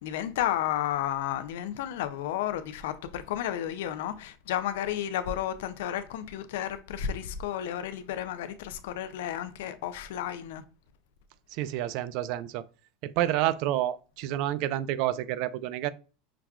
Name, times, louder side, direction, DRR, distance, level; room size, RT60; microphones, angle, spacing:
voice 1, 0.0-10.6, left 11 dB, 80° left, 0.4 m, -32 dB
voice 2, 11.5-12.6 13.0-15.9, right 13 dB, 60° right, 0.3 m, -29 dB
5.8 x 2.3 x 2.3 m
supercardioid pair, 130°, 0 cm